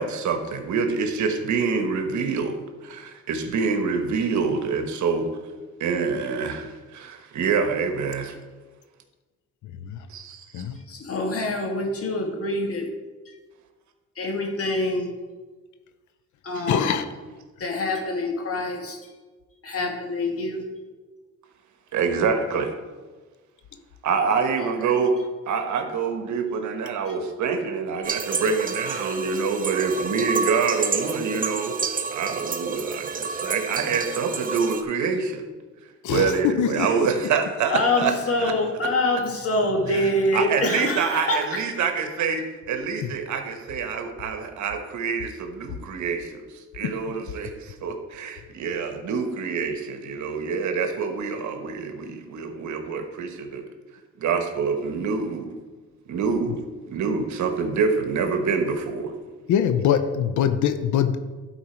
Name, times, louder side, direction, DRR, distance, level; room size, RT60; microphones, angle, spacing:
voice 1, 0.0-5.3 5.8-8.3 10.1-10.6 16.5-16.6 21.9-22.7 24.0-25.2 25.5-35.5 36.1-38.1 38.4-38.5 39.9-46.4 46.7-53.7 54.2-55.5 56.1-59.1, right 5 dB, 70° right, 6 dB, 1.2 m, -26 dB
voice 2, 10.9-12.9 14.2-15.1 16.4-17.1 17.6-19.0 19.6-20.6 24.6-24.7 37.7-41.6, left 2 dB, 50° left, 2 dB, 1.8 m, -25 dB
voice 3, 16.7-17.0 36.0-37.1 46.8-47.0 59.5-61.2, left 9 dB, 75° left, 10 dB, 0.7 m, -23 dB
sound 1, 28.0-34.8, right 5 dB, 30° right, 0.7 m, -29 dB
11.5 x 4.5 x 4.5 m, 1.3 s
cardioid pair, 90°, 30 cm